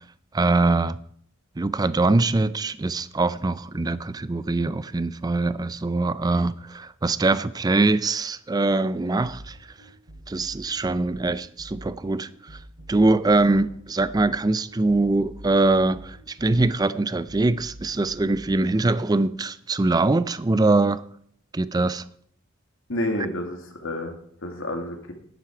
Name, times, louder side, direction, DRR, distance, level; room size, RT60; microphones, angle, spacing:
voice 1, 0.3-1.0 1.6-9.6 10.3-12.6 12.9-21.0 21.5-22.0, right 2 dB, 20° right, 0.4 m, -23 dB
sound 1, 9.2-18.6, right 1 dB, 75° right, 3.4 m, -45 dB
voice 2, 22.9-24.2 24.4-25.1, left 1 dB, 70° left, 2.2 m, -29 dB
11.0 x 11.0 x 4.7 m
head